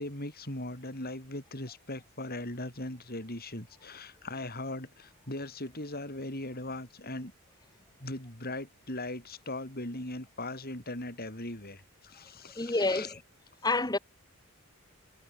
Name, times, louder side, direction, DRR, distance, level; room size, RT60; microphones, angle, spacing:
voice 1, 0.0-7.3 8.0-13.2, left 2 dB, 45° left, 7.9 m, -39 dB
voice 2, 12.5-13.1 13.6-14.0, left 2 dB, 20° left, 1.6 m, -28 dB
head